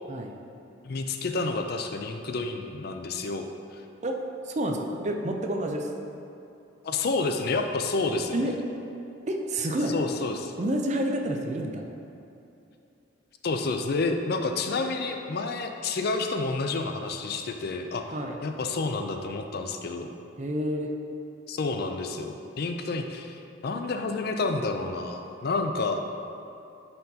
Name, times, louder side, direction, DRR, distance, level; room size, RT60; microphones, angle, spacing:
voice 1, 0.8-3.8 6.8-8.4 9.9-10.5 13.4-18.1 18.4-20.1 21.5-26.0, left 3 dB, 50° left, 5 dB, 0.4 m, -29 dB
voice 2, 4.4-5.9 8.3-8.5 9.3-9.9 10.6-11.9 18.1-18.4 20.4-20.9, right 1 dB, 35° right, 3 dB, 0.5 m, -29 dB
10.0 x 4.5 x 2.8 m, 2.8 s
head